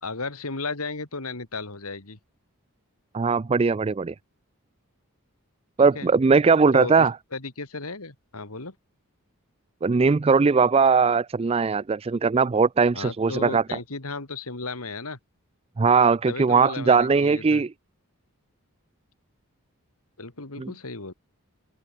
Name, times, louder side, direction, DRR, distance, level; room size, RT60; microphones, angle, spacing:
voice 1, 0.0-2.2 5.8-6.1 6.7-8.8 12.9-15.2 16.3-17.6 20.2-21.1, left 3 dB, 85° left, 2.7 m, -35 dB
voice 2, 3.1-4.1 5.8-7.1 9.8-13.6 15.8-17.7 20.6-20.7, right 5 dB, 25° right, 0.4 m, -20 dB
head